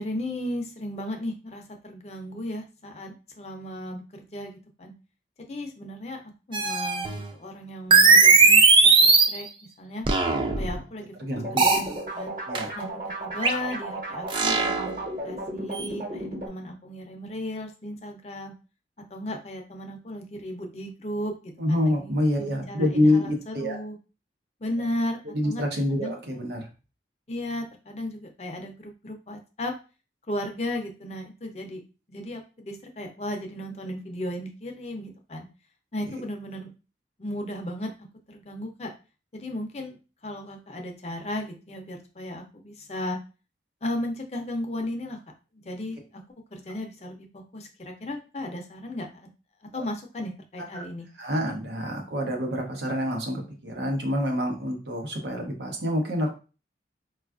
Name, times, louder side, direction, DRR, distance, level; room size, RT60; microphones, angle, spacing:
voice 1, 0.0-4.9 5.5-6.2 6.5-9.5 9.8-10.0 10.6-11.1 11.5-11.9 12.1-12.3 12.8-14.9 15.2-18.5 19.1-24.0 24.6-25.2 25.4-26.2 27.3-29.7 30.3-31.8 32.1-35.5 35.9-36.7 37.2-37.9 38.3-38.9 39.3-40.0 40.2-43.2 43.8-45.2 45.6-46.0 46.5-49.3 49.7-51.1, left 1 dB, 35° left, 3 dB, 0.5 m, -35 dB
sound 1, 6.5-7.3 7.9-9.4 10.1-10.8 11.6-11.9 12.6-12.7 13.4-13.5 14.3-14.9 15.7-15.9, right 4 dB, 25° right, 0.3 m, -18 dB
voice 2, 11.2-11.7 12.5-12.7 21.6-23.8 25.3-26.7 49.7-49.8 50.7-50.8 51.2-56.3, left 1 dB, 75° right, 3 dB, 0.8 m, -27 dB
sound 2, 11.3-16.5, right 1 dB, 45° right, 1.2 m, -34 dB
4.4 x 2.3 x 2.4 m, 0.33 s
head